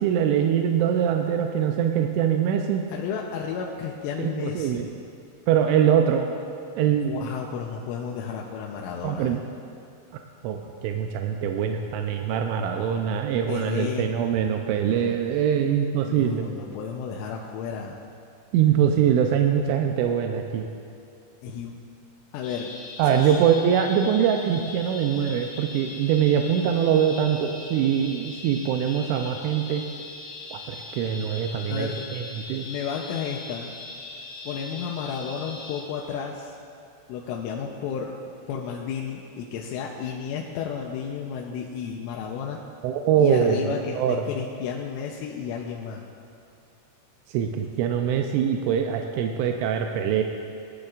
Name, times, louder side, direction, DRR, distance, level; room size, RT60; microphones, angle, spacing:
voice 1, 0.0-2.9 4.2-4.9 5.5-6.3 6.8-7.3 9.0-9.4 10.4-16.5 18.5-20.7 23.0-29.8 30.5-32.7 42.8-43.6 43.9-44.2 47.3-50.2, right 8 dB, 85° right, 4 dB, 2.7 m, -23 dB
voice 2, 2.9-4.9 6.9-9.4 13.5-14.1 16.0-18.0 21.4-21.8 22.3-22.7 23.2-23.4 31.7-32.1 32.6-33.7 34.4-36.6 37.1-38.2 38.5-42.6 43.2-46.0, left 7 dB, 80° left, -1 dB, 3.1 m, -32 dB
sound 1, 22.4-35.8, left 3 dB, 50° left, 3.3 m, -40 dB
19.5 x 11.5 x 2.4 m, 2.4 s
omnidirectional pair, 5.9 m